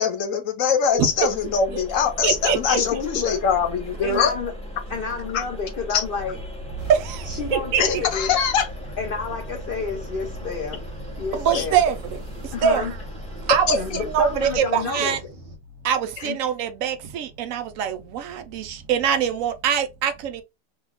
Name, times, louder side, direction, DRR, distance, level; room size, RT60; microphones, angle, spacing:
voice 1, 0.0-4.4 5.3-5.4 5.9-6.0 7.8-8.7 11.5-11.6 13.7-13.8, left 6 dB, 60° left, 1.0 m, -22 dB
sound 1, 0.8-14.6, left 1 dB, 10° left, 0.4 m, -37 dB
voice 2, 2.2-2.8 6.9-7.8 11.3-12.2 12.6-13.0 13.5-15.2 15.8-20.4, right 8 dB, 70° right, 0.8 m, -23 dB
voice 3, 2.7-3.4 4.0-4.5 4.9-6.4 7.3-8.3 9.0-10.8 11.2-11.8 12.5-12.9 13.7-15.2 16.2-16.4, left 5 dB, 85° left, 0.4 m, -30 dB
sound 2, 6.8-15.6, right 3 dB, 50° right, 1.1 m, -42 dB
3.1 x 2.3 x 3.4 m
omnidirectional pair, 1.7 m